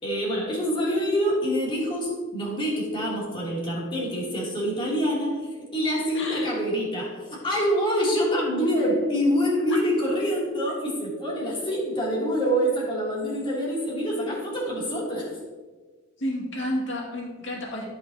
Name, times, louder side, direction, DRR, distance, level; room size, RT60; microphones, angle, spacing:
voice 1, 0.0-15.3, equal, 25° left, -5 dB, 2.9 m, -26 dB
voice 2, 6.1-6.5 9.7-9.8 16.2-17.8, left 1 dB, 65° left, -2 dB, 2.2 m, -31 dB
14.5 x 5.9 x 2.9 m, 1.4 s
head